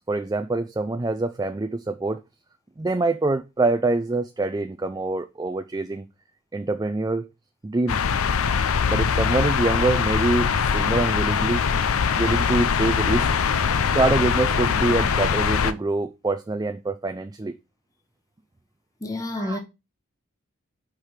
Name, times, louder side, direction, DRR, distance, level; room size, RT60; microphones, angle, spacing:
voice 1, 0.0-2.2 2.8-6.1 6.5-7.3 7.6-8.0 8.9-11.6 12.1-13.3 13.9-17.6 19.3-19.6, right 2 dB, 20° right, 0.3 m, -25 dB
sound 1, 7.9-15.7, left 6 dB, 85° left, 0.5 m, -22 dB
voice 2, 19.0-19.6, left 1 dB, 15° left, 0.9 m, -29 dB
4.9 x 4.8 x 5.7 m
head